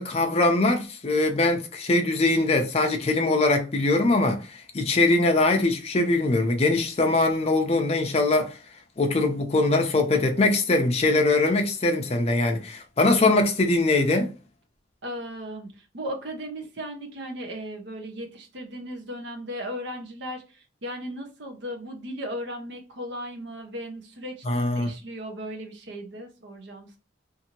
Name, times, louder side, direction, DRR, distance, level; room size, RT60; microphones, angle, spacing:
voice 1, 0.0-8.6 9.0-14.3 24.5-24.9, left 2 dB, 30° left, 0.5 m, -22 dB
voice 2, 15.0-27.0, equal, 60° right, 0.7 m, -36 dB
2.7 x 2.5 x 2.8 m
head